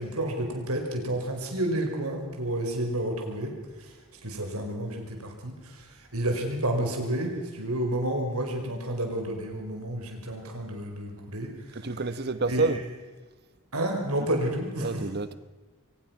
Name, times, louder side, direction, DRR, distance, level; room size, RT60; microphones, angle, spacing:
voice 1, 0.0-3.5 4.2-5.8 6.1-11.5 11.8-11.9 12.5-12.7 13.7-15.0, right 1 dB, 80° right, 3 dB, 5.1 m, -30 dB
voice 2, 11.7-12.8 14.8-15.3, right 3 dB, 45° right, 13 dB, 1.1 m, -28 dB
23.0 x 19.5 x 5.9 m, 1.3 s
head